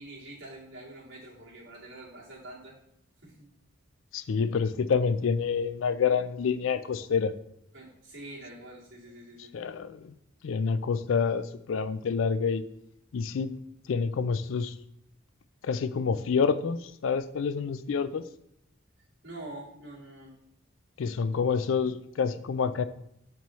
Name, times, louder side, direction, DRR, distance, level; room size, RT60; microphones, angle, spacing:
voice 1, 0.0-2.7 3.2-3.5 7.7-9.5 19.2-20.4, right 1 dB, 65° right, -6 dB, 2.3 m, -45 dB
voice 2, 4.1-7.3 9.5-10.1 10.4-12.6 13.1-13.5 13.9-14.7 15.6-18.2 21.0-22.9, left 5 dB, 80° left, 13 dB, 0.4 m, -28 dB
6.9 x 4.5 x 3.1 m, 0.76 s
head